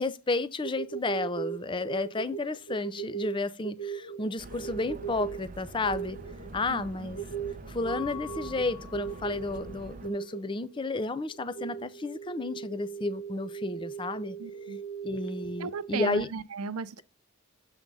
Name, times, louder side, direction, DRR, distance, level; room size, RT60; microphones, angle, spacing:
voice 1, 0.0-6.2 6.5-7.2 7.7-14.4 15.0-16.3, left 3 dB, 20° left, 0.4 m, -32 dB
sound 1, 0.6-16.3, right 7 dB, 85° left, 1.1 m, -39 dB
sound 2, 4.4-10.1, right 2 dB, 35° right, 0.6 m, -45 dB
Mallet percussion, 7.9-9.7, left 12 dB, 5° right, 1.3 m, -44 dB
voice 2, 14.4-14.8 15.6-17.0, right 5 dB, 85° right, 0.6 m, -35 dB
7.4 x 3.5 x 5.3 m
head